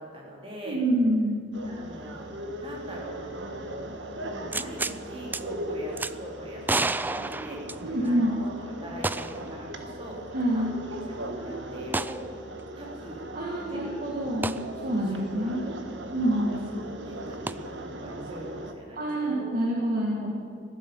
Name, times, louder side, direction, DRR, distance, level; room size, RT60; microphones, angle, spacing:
voice 1, 0.0-0.8 1.7-2.3 2.6-3.2 4.3-8.5 8.8-12.2 12.8-13.2 13.5-14.0 14.2-14.5 15.1-15.7 16.4-16.6 17.0-19.4, equal, 30° right, -3 dB, 3.8 m, -42 dB
voice 2, 0.7-1.4 7.8-8.4 10.3-10.7 13.3-14.6 14.8-15.6 16.1-16.6 18.9-20.3, right 1 dB, 50° right, -3 dB, 2.0 m, -26 dB
sound 1, 1.5-18.7, right 1 dB, 85° right, 1.4 m, -39 dB
sound 2, 4.5-5.0 5.3-5.4 6.0-6.1 6.6-8.2 9.0-9.5 9.8-9.9 11.9-12.2 14.4-14.6 17.5-17.6, right 3 dB, 10° right, 0.3 m, -29 dB
14.5 x 12.0 x 7.2 m, 2.2 s
head